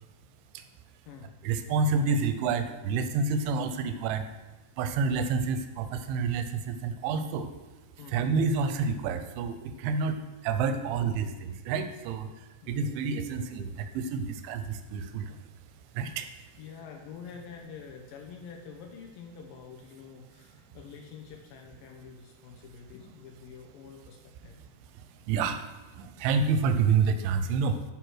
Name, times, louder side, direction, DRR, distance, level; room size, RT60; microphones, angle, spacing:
voice 1, 1.4-4.3 4.8-7.5 8.1-10.2 10.4-15.4 15.9-16.3 25.3-25.7 26.0-27.8, right 5 dB, 90° right, 8 dB, 3.1 m, -28 dB
voice 2, 12.6-12.9 13.2-13.4 16.6-24.6, left 6 dB, 85° left, 2 dB, 1.9 m, -47 dB
11.0 x 4.9 x 6.3 m, 1.2 s
omnidirectional pair, 5.2 m